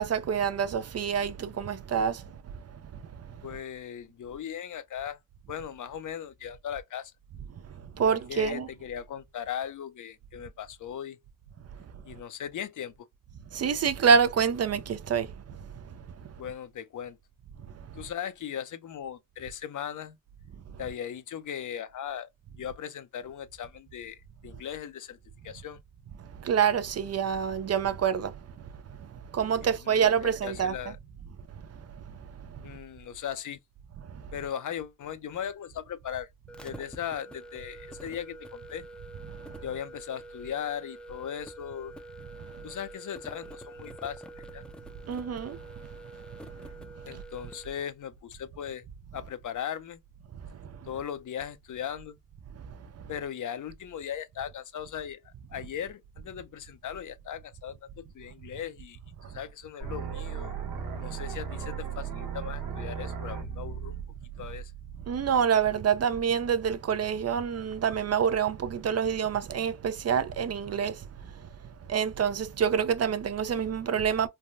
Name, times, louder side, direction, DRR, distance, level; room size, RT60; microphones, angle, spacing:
voice 1, 0.0-2.2 8.0-8.7 13.5-15.3 26.4-28.3 29.3-30.7 45.1-45.6 65.1-71.0 71.9-74.3, right 7 dB, 45° right, 0.5 m, -26 dB
voice 2, 3.4-5.2 5.5-7.1 8.0-11.2 12.0-13.1 16.4-17.2 17.9-20.2 20.8-25.2 25.4-25.8 29.6-31.0 32.6-33.6 34.3-36.3 36.6-38.8 39.6-41.9 42.6-44.6 47.1-48.9 49.1-50.0 50.8-52.2 53.1-60.5 61.0-63.9 64.4-64.7, left 9 dB, 60° left, 0.6 m, -38 dB
sound 1, 36.5-47.8, right 1 dB, 5° left, 0.5 m, -47 dB
sound 2, 59.8-65.8, right 7 dB, 80° right, 1.2 m, -37 dB
3.3 x 2.2 x 2.5 m
cardioid pair, 75°, 34 cm